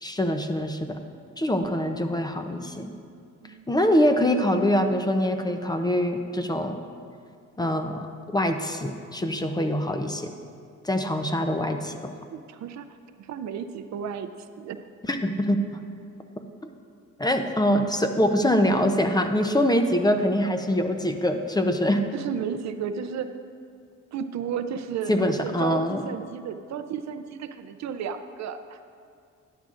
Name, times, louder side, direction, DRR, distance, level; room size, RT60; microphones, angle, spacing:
voice 1, 0.0-0.9 1.4-2.9 3.7-6.8 7.6-10.3 10.8-12.1 15.1-15.8 17.2-22.1 25.1-26.0, left 1 dB, 15° left, 6 dB, 0.6 m, -24 dB
voice 2, 12.3-12.9 13.2-14.3 14.6-14.8 22.1-23.3 24.1-28.8, right 7 dB, 65° right, 10 dB, 0.5 m, -33 dB
12.5 x 9.8 x 2.5 m, 2.3 s
cardioid pair, 90°, 30 cm